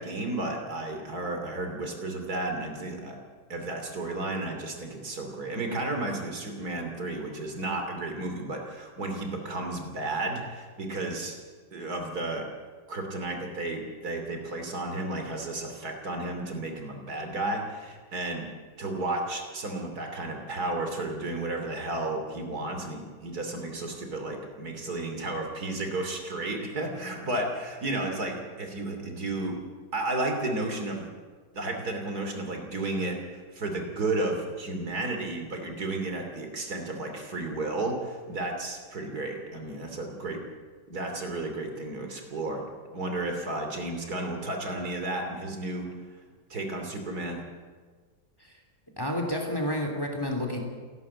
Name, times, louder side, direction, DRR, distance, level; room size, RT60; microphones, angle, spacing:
voice 1, 0.0-3.2 3.5-11.4 11.7-12.5 12.9-18.4 18.8-29.6 29.9-31.1 31.5-33.2 33.5-40.4 40.9-42.6 42.9-45.9 46.5-47.4, right 2 dB, 65° right, 3 dB, 3.4 m, -33 dB
voice 2, 49.0-50.6, left 1 dB, 15° left, 3 dB, 3.2 m, -30 dB
29.5 x 11.5 x 8.6 m, 1.5 s
omnidirectional pair, 1.8 m